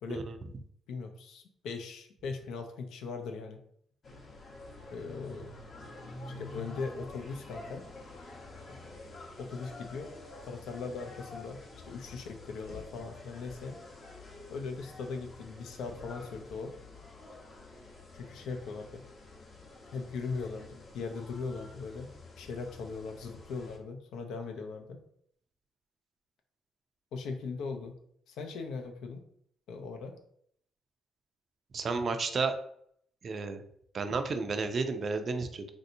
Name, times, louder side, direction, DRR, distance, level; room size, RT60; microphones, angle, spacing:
voice 1, 0.9-3.6 4.9-5.5 6.3-7.8 8.7-8.8 9.4-10.1 10.4-11.6 11.8-13.8 14.5-16.7 18.1-19.0 19.9-22.1 22.4-25.0 27.1-28.0 28.3-29.2 29.7-30.2, left 4 dB, 80° left, 4 dB, 0.5 m, -39 dB
sound 1, 4.0-23.8, left 2 dB, 45° left, 0.7 m, -48 dB
voice 2, 31.7-32.6 33.2-33.6 33.9-35.6, right 4 dB, 45° right, 8 dB, 0.4 m, -32 dB
3.3 x 2.7 x 2.6 m, 0.67 s
cardioid pair, 90°, 0 cm